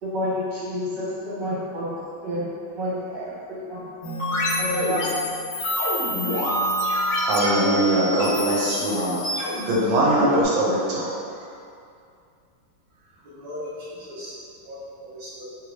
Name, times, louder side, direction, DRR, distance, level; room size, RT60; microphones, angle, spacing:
voice 1, 0.0-2.4 2.7-3.9 4.6-5.1, equal, 65° right, -8 dB, 1.5 m, -29 dB
sound 1, 4.0-10.4, left 1 dB, 60° left, 1.3 m, -26 dB
voice 2, 7.2-11.1, right 1 dB, 85° right, -5 dB, 1.4 m, -22 dB
voice 3, 13.2-14.3 14.6-15.4, left 1 dB, 35° right, -11 dB, 0.8 m, -38 dB
3.2 x 2.6 x 3.0 m, 2.4 s
omnidirectional pair, 2.1 m